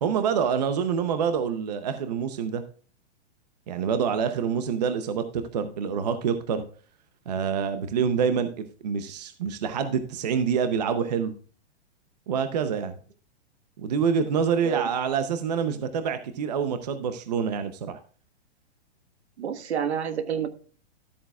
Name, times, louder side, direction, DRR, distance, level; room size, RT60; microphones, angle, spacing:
voice 1, 0.0-2.6 3.7-6.6 7.3-11.3 12.3-12.9 13.8-18.0, right 7 dB, 35° right, 9 dB, 0.7 m, -26 dB
voice 2, 19.4-20.7, right 8 dB, 70° right, 10 dB, 1.4 m, -29 dB
13.0 x 8.5 x 2.3 m, 0.41 s
hypercardioid pair, 180°, 34 cm